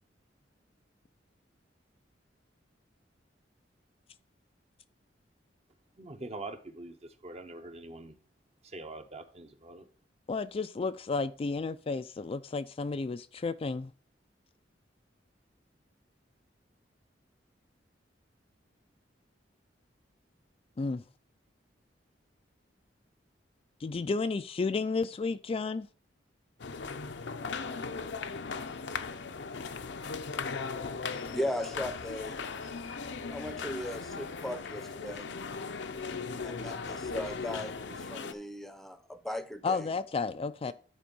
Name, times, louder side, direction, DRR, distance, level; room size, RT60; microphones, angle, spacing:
voice 1, 6.0-8.2 8.6-9.9, right 2 dB, 35° right, 0.9 m, -44 dB
voice 2, 10.3-13.9 20.8-21.0 23.8-25.9 39.6-40.7, left 4 dB, 30° left, 0.3 m, -32 dB
sound 1, 26.6-38.3, left 4 dB, 70° left, 0.6 m, -38 dB
voice 3, 31.3-32.4 33.3-35.2 36.4-39.9 40.7-40.8, left 1 dB, ahead, 0.7 m, -37 dB
10.5 x 4.4 x 5.3 m
head